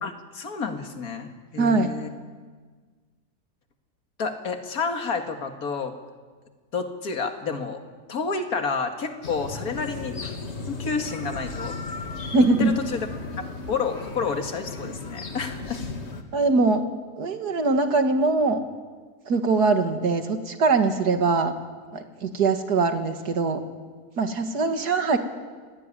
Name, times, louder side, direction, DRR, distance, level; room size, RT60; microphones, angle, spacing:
voice 1, 0.0-2.1 4.2-5.9 6.7-7.8 8.1-10.4 10.7-11.8 12.6-13.1 13.7-15.8, left 5 dB, 65° left, 6 dB, 2.4 m, -30 dB
voice 2, 1.6-1.9 12.3-12.7 16.3-16.9 17.2-18.6 19.3-21.5 21.9-23.6 24.2-25.2, right 3 dB, 80° right, 7 dB, 2.5 m, -22 dB
sound 1, 9.2-16.2, left 3 dB, 45° left, 2.1 m, -35 dB
26.0 x 19.0 x 10.0 m, 1.5 s
omnidirectional pair, 1.7 m